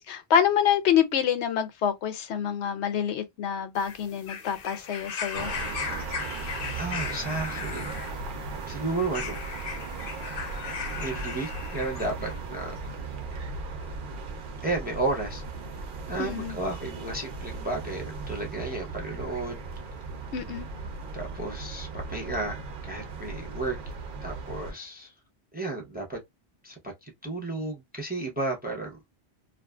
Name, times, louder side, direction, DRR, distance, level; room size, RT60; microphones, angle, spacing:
voice 1, 0.1-5.5 16.2-16.6 20.3-20.7, left 8 dB, 85° left, 0.9 m, -26 dB
sound 1, 3.8-12.4 13.3-13.4, left 6 dB, 60° left, 0.8 m, -37 dB
sound 2, 5.3-24.7, right 4 dB, 55° right, 0.7 m, -37 dB
voice 2, 6.7-8.0 8.7-9.4 11.0-12.7 14.6-15.4 16.1-19.6 21.1-23.8 24.2-25.1 25.5-26.2 26.6-26.7 27.0-29.0, right 2 dB, 10° right, 0.5 m, -33 dB
2.6 x 2.4 x 2.2 m
omnidirectional pair, 1.1 m